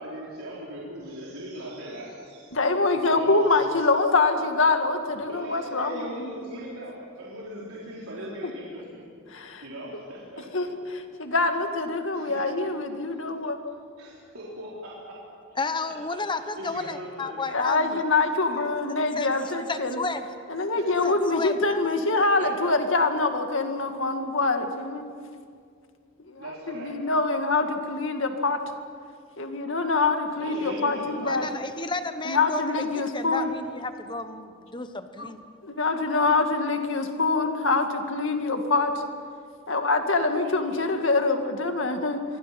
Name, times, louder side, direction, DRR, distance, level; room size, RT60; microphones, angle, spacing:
voice 1, 0.0-2.5 2.9-3.5 5.2-9.1 9.6-10.5 12.1-12.4 14.0-15.2 15.5-15.6 16.1-16.2 16.6-17.4 18.1-18.2 19.4-19.5 20.7-20.9 22.4-22.5 26.4-27.0 30.3-31.7 33.4-33.5, right 1 dB, 85° right, -6 dB, 4.3 m, -39 dB
voice 2, 2.5-6.4 9.3-9.6 10.5-13.6 17.5-20.0 20.5-25.1 26.3-28.6 29.4-31.5 32.2-33.5 35.2-35.3 35.6-39.0 39.7-42.2, left 3 dB, 65° left, 5 dB, 2.1 m, -25 dB
voice 3, 15.6-18.0 19.2-19.3 19.7-20.3 21.0-21.8 31.2-32.6 32.9-35.4, left 3 dB, 20° left, 9 dB, 1.2 m, -32 dB
26.5 x 24.0 x 6.0 m, 2.2 s
head